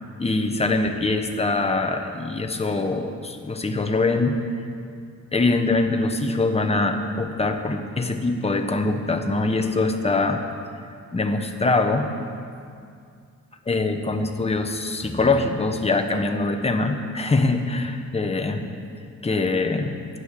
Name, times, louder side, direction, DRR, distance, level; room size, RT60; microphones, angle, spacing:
voice 1, 0.2-4.4 5.3-10.4 11.1-12.1 13.7-18.6 19.2-20.0, left 3 dB, 20° left, 5 dB, 1.0 m, -23 dB
11.5 x 9.4 x 6.6 m, 2.3 s
wide cardioid pair, 110°, 30 cm